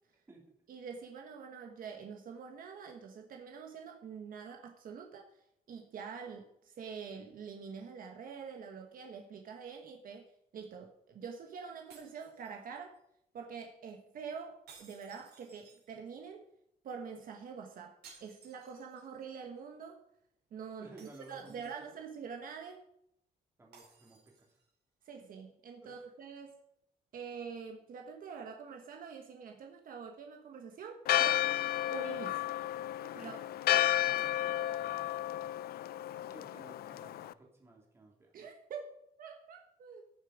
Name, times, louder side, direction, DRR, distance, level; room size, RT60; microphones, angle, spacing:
voice 1, 0.7-13.0 13.3-16.4 16.8-20.0 20.5-22.8 25.0-26.6 27.1-31.5 31.9-32.5 33.1-33.4 38.3-38.9 39.2-40.0, right 6 dB, 55° right, 3 dB, 1.3 m, -46 dB
sound 1, 11.9-13.0 14.7-16.2 18.0-19.2 19.6-19.7 21.0-22.1 23.7-24.7, right 5 dB, 70° right, 4.8 m, -59 dB
voice 2, 20.8-21.8 23.6-24.6 25.8-26.1 33.0-33.4 34.0-35.2 36.3-38.3, right 2 dB, 15° right, -1 dB, 2.5 m, -56 dB
Church bell, 31.1-37.3, left 13 dB, 65° left, 0.4 m, -32 dB
15.0 x 7.0 x 5.0 m, 0.74 s
cardioid pair, 175°, 17 cm